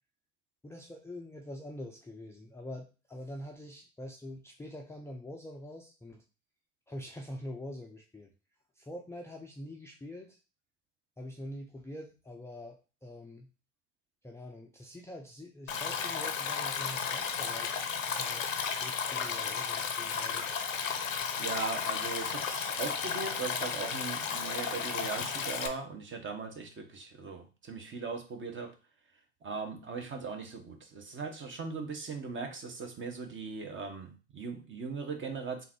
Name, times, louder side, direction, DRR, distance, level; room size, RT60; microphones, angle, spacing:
voice 1, 0.6-6.2 6.9-8.3 8.8-10.4 11.2-13.5 14.2-17.8 18.2-20.6, left 1 dB, 5° left, 0 dB, 0.5 m, -45 dB
Stream, 15.7-25.7, left 6 dB, 90° left, 0.7 m, -34 dB
voice 2, 21.4-28.7 29.4-35.6, right 4 dB, 30° right, 3 dB, 1.1 m, -39 dB
3.8 x 2.7 x 4.4 m, 0.33 s
hypercardioid pair, 80°, 38 cm